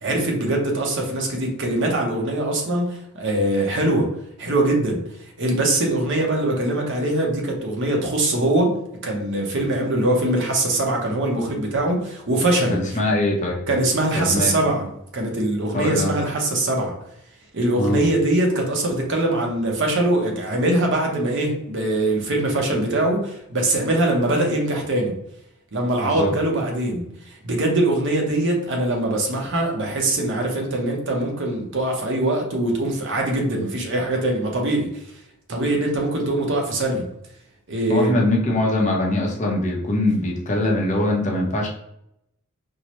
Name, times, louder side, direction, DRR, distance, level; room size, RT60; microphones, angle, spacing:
voice 1, 0.0-4.1 4.4-5.0 5.4-8.8 9.0-13.0 13.7-16.9 17.5-25.1 25.7-35.0 35.5-37.1 37.7-38.2, right 1 dB, 55° right, 1 dB, 0.8 m, -22 dB
voice 2, 12.7-13.7 14.1-14.6 15.7-16.2 17.8-18.0 26.0-26.3 37.9-41.7, left 1 dB, 35° left, -1 dB, 0.7 m, -22 dB
4.4 x 2.1 x 3.0 m, 0.77 s
head